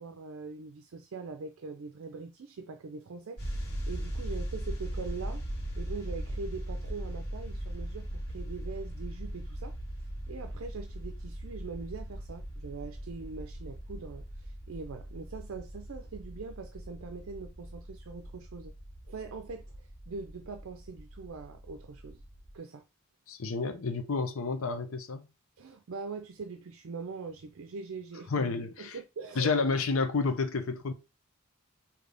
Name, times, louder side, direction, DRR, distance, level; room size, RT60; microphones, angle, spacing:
voice 1, 0.0-5.4 5.8-9.8 10.3-18.7 19.1-22.2 22.5-22.8 25.6-28.3 28.8-29.5, right 4 dB, 70° right, 0.4 m, -42 dB
sound 1, 3.4-22.5, right 1 dB, 50° left, 1.9 m, -39 dB
voice 2, 23.3-25.2 28.3-29.0 29.3-30.9, left 4 dB, 70° left, 0.7 m, -30 dB
3.8 x 2.8 x 3.4 m
head